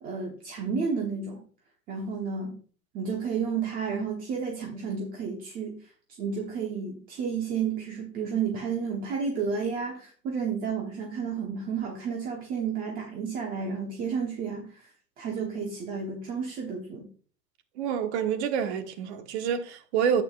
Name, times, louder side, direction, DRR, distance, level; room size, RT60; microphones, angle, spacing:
voice 1, 0.0-1.4 1.9-2.5 2.9-5.8 6.2-14.9 15.2-17.1, right 6 dB, 20° right, 1.1 m, -31 dB
voice 2, 17.8-20.2, right 8 dB, 40° right, 1.4 m, -27 dB
11.0 x 8.7 x 2.5 m
hypercardioid pair, 155°, 50 cm